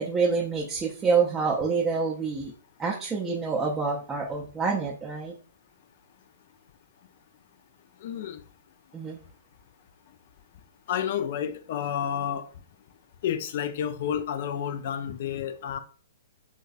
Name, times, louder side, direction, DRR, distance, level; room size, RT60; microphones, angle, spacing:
voice 1, 0.0-2.5 2.8-5.3 8.9-9.2, right 5 dB, 15° right, 0.4 m, -27 dB
voice 2, 8.0-8.4 10.9-12.4 13.2-15.8, left 9 dB, 50° left, 0.4 m, -30 dB
3.8 x 2.3 x 2.4 m
figure-of-eight pair, 115°, 0 cm